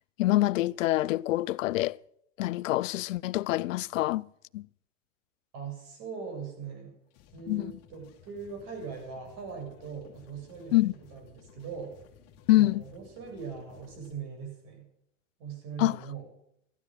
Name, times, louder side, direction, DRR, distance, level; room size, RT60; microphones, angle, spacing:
voice 1, 0.2-2.0 2.4-4.2 4.5-4.6 7.5-7.7 10.7-10.9 12.5-12.8 15.8-16.0, left 17 dB, 85° left, 0.6 m, -25 dB
voice 2, 5.5-7.0 7.3-10.8 11.1-12.0 12.5-14.9 15.4-16.3, right 6 dB, 45° right, 7.4 m, -40 dB
sound 1, 7.1-14.1, left 8 dB, 35° left, 2.3 m, -57 dB
15.5 x 12.5 x 6.6 m
supercardioid pair, 150°, 38 cm